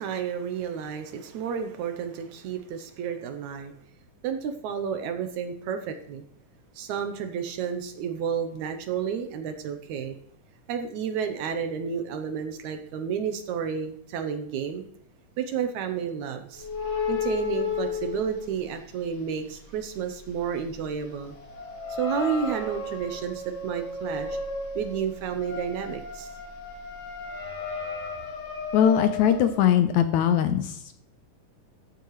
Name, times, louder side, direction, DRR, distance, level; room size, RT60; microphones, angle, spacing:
voice 1, 0.0-3.7 4.2-6.2 6.8-10.2 10.7-14.9 15.4-16.7 17.1-21.3 21.9-24.4 24.8-26.3, right 7 dB, 70° right, 7 dB, 2.0 m, -31 dB
sound 1, 16.5-19.0 19.4-29.6, left 4 dB, 50° left, 2.7 m, -34 dB
voice 2, 28.7-31.0, left 9 dB, 75° left, 9 dB, 1.8 m, -21 dB
14.0 x 7.5 x 3.1 m, 0.70 s
omnidirectional pair, 3.8 m